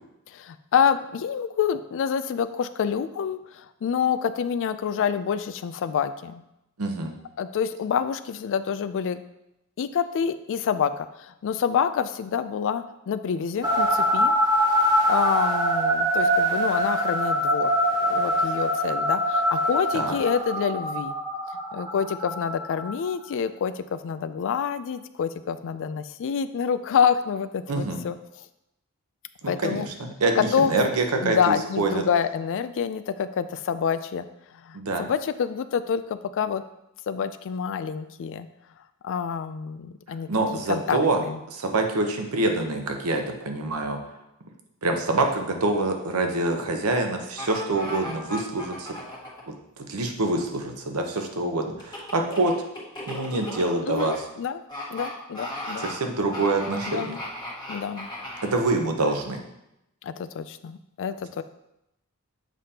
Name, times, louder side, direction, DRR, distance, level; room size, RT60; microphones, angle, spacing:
voice 1, 0.3-6.4 7.4-9.2 9.8-14.4 15.1-17.7 18.0-21.1 21.7-28.4 29.5-29.9 30.3-30.7 31.2-34.3 34.6-36.6 37.1-38.5 39.0-40.3 40.7-41.4 53.9-54.6 54.9-55.9 56.9-57.2 57.7-58.1 60.0-61.4, left 7 dB, 60° left, 13 dB, 0.3 m, -27 dB
voice 2, 6.8-7.1 19.9-20.1 27.7-28.0 29.4-32.0 34.7-35.0 40.3-41.2 41.5-44.0 44.8-49.0 49.9-52.5 53.1-54.1 55.8-57.1 58.5-59.4, right 2 dB, 80° right, 4 dB, 0.9 m, -26 dB
sound 1, 13.6-23.1, equal, 20° right, 1.1 m, -24 dB
sound 2, 47.4-49.4 51.8-54.2 54.7-55.1 55.3-55.9 56.3-58.5 59.0-59.1, left 1 dB, 20° left, 1.4 m, -36 dB
7.5 x 5.1 x 2.8 m, 0.87 s
head